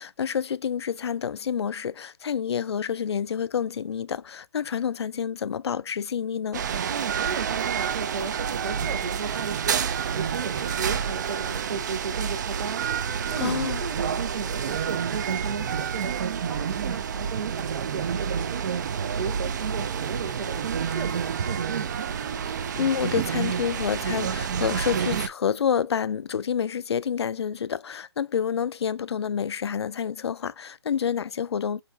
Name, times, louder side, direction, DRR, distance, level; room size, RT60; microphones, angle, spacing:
voice 1, 0.0-6.6 13.4-13.8 22.5-31.8, left 7 dB, 75° left, 0.4 m, -28 dB
sound 1, 6.5-25.3, right 7 dB, 45° right, 0.5 m, -29 dB
voice 2, 6.9-18.8 19.1-22.1, right 5 dB, 75° right, 1.1 m, -35 dB
4.0 x 4.0 x 2.7 m
hypercardioid pair, 150°, 14 cm